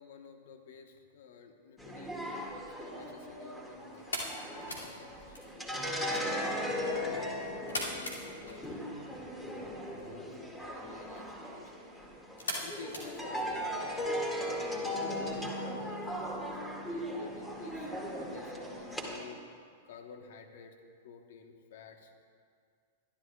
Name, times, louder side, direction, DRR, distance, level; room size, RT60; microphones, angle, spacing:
voice 1, 0.0-5.5 5.7-7.2 7.5-8.8 9.3-9.5 10.0-11.7 12.6-16.5 16.8-19.4 19.8-20.8 21.0-22.3, left 6 dB, 60° left, 5 dB, 1.2 m, -52 dB
sound 1, 1.8-19.2, equal, 10° left, 2.1 m, -38 dB
sound 2, 2.6-14.0, left 1 dB, 80° left, 2.6 m, -44 dB
24.0 x 12.0 x 2.4 m, 2.1 s
figure-of-eight pair, 100°, 0 cm